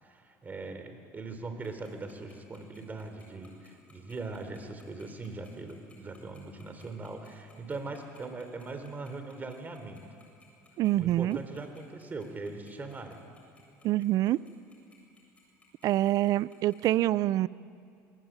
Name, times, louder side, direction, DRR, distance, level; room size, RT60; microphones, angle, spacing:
voice 1, 0.0-10.0 10.9-13.2, right 3 dB, 25° right, 7 dB, 3.6 m, -41 dB
Tick-tock, 1.6-16.8, left 3 dB, 20° left, 7.7 m, -60 dB
voice 2, 10.8-11.4 13.8-14.4 15.8-17.5, right 14 dB, 55° right, 19 dB, 0.6 m, -26 dB
23.0 x 21.0 x 9.0 m, 2.4 s
supercardioid pair, 105°, 7 cm